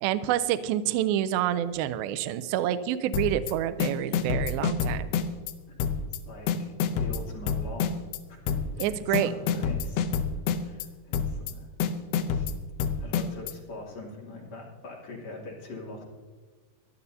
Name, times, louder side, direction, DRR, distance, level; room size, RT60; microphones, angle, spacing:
voice 1, 0.0-5.1 8.8-9.3, right 11 dB, 85° right, 11 dB, 2.2 m, -27 dB
sound 1, 3.1-3.5 3.8-5.5 5.8-6.2 6.5-8.2 8.5-8.9 9.1-10.9 11.1-11.5 11.8-13.5, left 7 dB, 75° left, 2.4 m, -27 dB
voice 2, 6.2-6.7 7.0-8.0 8.3-10.0 10.6-11.7 12.3-12.5 13.0-16.0, left 2 dB, 45° left, -3 dB, 3.6 m, -42 dB
22.5 x 12.5 x 2.8 m, 1.4 s
omnidirectional pair, 4.8 m